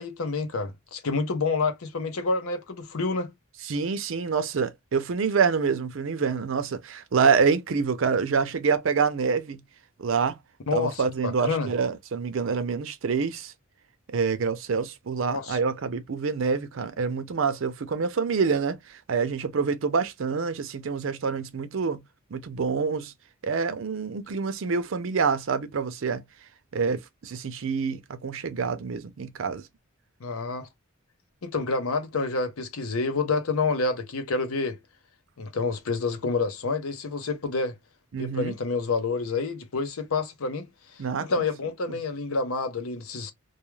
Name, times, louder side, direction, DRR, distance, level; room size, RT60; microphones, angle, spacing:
voice 1, 0.0-3.3 10.7-11.7 15.3-15.6 30.2-30.7 31.4-34.8 35.4-37.7 38.2-40.7 41.2-43.3, left 4 dB, 80° left, 0.7 m, -28 dB
voice 2, 3.6-9.6 10.0-10.4 10.7-13.5 14.1-22.0 22.3-23.1 23.4-26.2 26.7-29.6 38.1-38.5 41.0-41.4 41.9-42.0, right 5 dB, 60° right, 0.5 m, -26 dB
2.3 x 2.2 x 3.0 m
head